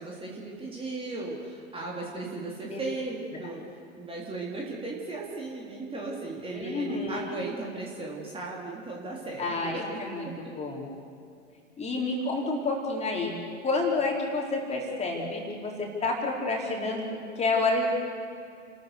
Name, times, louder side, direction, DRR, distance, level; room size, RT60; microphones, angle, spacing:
voice 1, 0.0-10.0 10.3-10.5, right 3 dB, 15° right, -3 dB, 3.5 m, -36 dB
voice 2, 6.5-7.4 9.4-10.3 10.6-10.9 11.8-13.3 13.6-17.8, left 3 dB, 20° left, -1 dB, 4.4 m, -29 dB
30.0 x 13.5 x 6.9 m, 2.3 s
hypercardioid pair, 100°, 35 cm